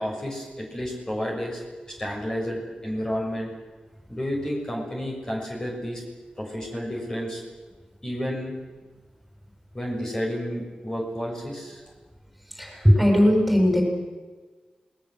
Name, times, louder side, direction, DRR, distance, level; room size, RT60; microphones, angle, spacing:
voice 1, 0.0-1.6 1.9-3.5 4.1-6.0 6.4-7.4 8.0-8.6 9.7-11.8, equal, 25° left, -1 dB, 6.9 m, -31 dB
voice 2, 12.5-13.8, equal, ahead, 1 dB, 7.7 m, -18 dB
27.0 x 21.0 x 8.0 m, 1.4 s
wide cardioid pair, 85°, 3 cm